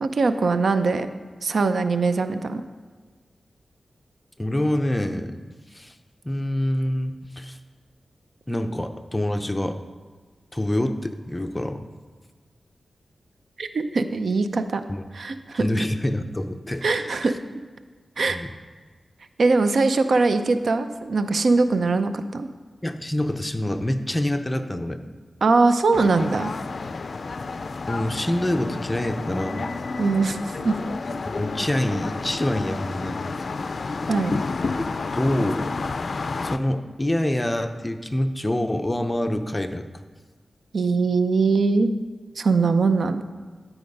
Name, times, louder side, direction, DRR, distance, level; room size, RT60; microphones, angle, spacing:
voice 1, 0.0-1.1 1.4-2.6 13.6-14.8 15.1-15.6 16.8-17.3 18.2-18.4 19.4-22.5 25.4-26.5 30.0-30.4 30.6-30.7 34.1-34.4 40.7-41.9 42.4-43.2, right 3 dB, 70° right, 10 dB, 0.5 m, -21 dB
voice 2, 4.4-5.4 5.7-5.9 6.2-7.6 8.5-9.8 10.5-11.8 14.9-15.0 15.5-17.4 18.3-18.5 22.8-25.0 27.9-29.7 31.2-33.2 35.1-35.7 36.4-39.9, left 1 dB, 15° left, 8 dB, 0.6 m, -26 dB
sound 1, 25.9-36.6, left 4 dB, 60° left, 0.4 m, -30 dB
12.0 x 4.9 x 5.3 m, 1.4 s
wide cardioid pair, 80°, 0 cm